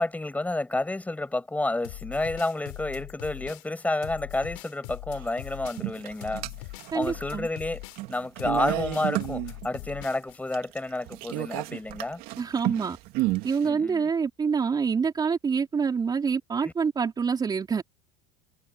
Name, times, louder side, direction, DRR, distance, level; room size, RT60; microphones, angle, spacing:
voice 1, 0.0-6.4 6.9-7.8 8.1-12.2 13.6-14.1 16.6-16.7, left 2 dB, 10° left, 6.0 m, -30 dB
sound 1, 1.8-10.6, left 31 dB, 70° left, 3.2 m, -41 dB
sound 2, 5.1-5.2 5.7-7.2 7.6-10.0 10.5-13.7, right 19 dB, 55° right, 2.5 m, -31 dB
voice 2, 6.9-7.5 12.4-13.0 13.4-17.8, right 6 dB, 20° right, 3.9 m, -26 dB
supercardioid pair, 110°, 18 cm